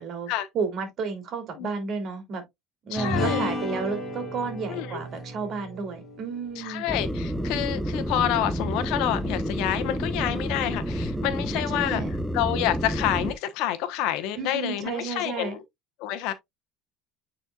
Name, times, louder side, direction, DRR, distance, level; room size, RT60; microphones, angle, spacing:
voice 1, 0.0-2.4 2.8-6.8 11.3-12.1 14.4-15.6, right 5 dB, 40° right, 3.1 m, -32 dB
voice 2, 2.9-3.5 4.7-5.0 6.6-12.0 12.3-15.6 16.0-16.3, left 12 dB, 70° left, 1.0 m, -28 dB
sound 1, 3.0-7.7, left 1 dB, 20° left, 2.6 m, -33 dB
sound 2, 6.9-13.3, equal, ahead, 0.9 m, -29 dB
9.2 x 4.4 x 2.4 m
cardioid pair, 140°, 0 cm